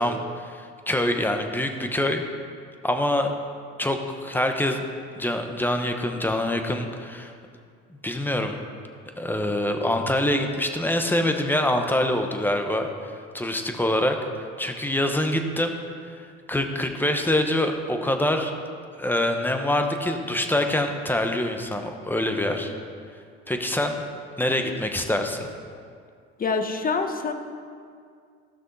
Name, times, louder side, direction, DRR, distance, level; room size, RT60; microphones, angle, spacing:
voice 1, 0.0-2.2 2.8-3.3 3.8-4.8 5.2-7.3 8.0-8.6 9.2-12.9 13.3-14.2 14.6-15.8 16.5-18.5 19.0-22.7 23.5-24.0 24.4-25.5, left 1 dB, 5° left, 5 dB, 1.1 m, -25 dB
voice 2, 26.4-27.3, left 4 dB, 30° left, 7 dB, 1.1 m, -25 dB
15.5 x 6.1 x 4.2 m, 2.2 s
supercardioid pair, 95°, 31 cm